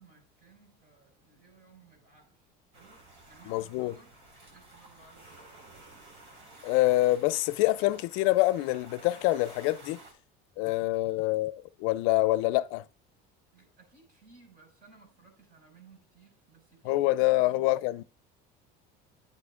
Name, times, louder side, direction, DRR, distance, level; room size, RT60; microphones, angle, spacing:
voice 1, 0.0-2.5 2.7-4.2 4.5-5.7 10.6-10.9 13.5-18.0, right 4 dB, 45° right, 5.6 m, -59 dB
sound 1, 2.7-10.1, right 2 dB, 70° right, 4.6 m, -53 dB
voice 2, 3.5-3.9 6.6-10.0 10.6-12.9 16.9-18.0, left 17 dB, 75° left, 0.5 m, -26 dB
11.5 x 8.5 x 2.5 m
supercardioid pair, 110°, 21 cm